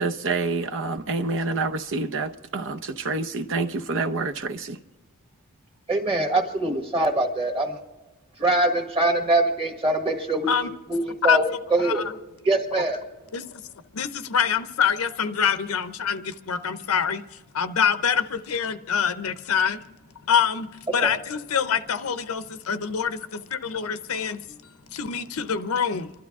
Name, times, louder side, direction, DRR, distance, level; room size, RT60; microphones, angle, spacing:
voice 1, 0.0-4.8, right 3 dB, 60° right, 0.8 m, -27 dB
voice 2, 5.9-7.8 8.4-10.5 10.9-12.0 12.4-13.0 21.0-21.1, right 2 dB, 25° right, 1.7 m, -23 dB
voice 3, 11.8-12.1 13.3-13.6 13.9-19.8 20.3-24.6 24.9-26.1, left 7 dB, 70° left, 0.7 m, -25 dB
29.0 x 12.0 x 3.6 m
head